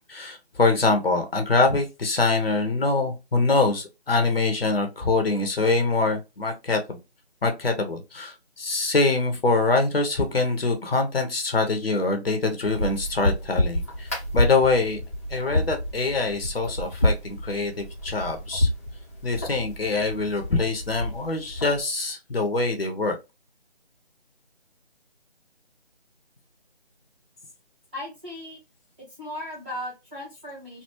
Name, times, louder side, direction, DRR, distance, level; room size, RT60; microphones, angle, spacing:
voice 1, 0.1-7.0 7.4-15.0 15.3-18.7 19.2-23.2, left 3 dB, 65° left, 0.9 m, -24 dB
sound 1, 12.6-21.8, left 1 dB, 15° left, 0.7 m, -29 dB
voice 2, 27.9-28.6 29.0-30.8, left 1 dB, 10° right, 1.1 m, -37 dB
3.3 x 2.3 x 2.9 m
figure-of-eight pair, 160°, 33 cm